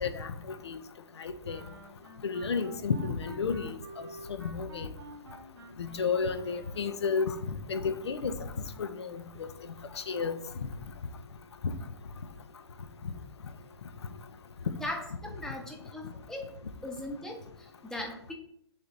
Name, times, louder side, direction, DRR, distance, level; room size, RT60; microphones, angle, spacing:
voice 1, 0.0-0.8 1.2-1.6 2.2-3.8 4.4-4.9 5.8-7.4 7.7-8.3 8.8-9.5 10.0-10.3 11.6-11.7, left 5 dB, 80° left, 9 dB, 0.5 m, -32 dB
Wind instrument woodwind instrument, 1.4-7.2, right 2 dB, 60° right, 0.8 m, -50 dB
voice 2, 14.8-16.4 16.8-18.3, left 1 dB, 5° left, 0 dB, 0.8 m, -39 dB
3.7 x 3.4 x 4.0 m, 0.70 s
hypercardioid pair, 130°, 14 cm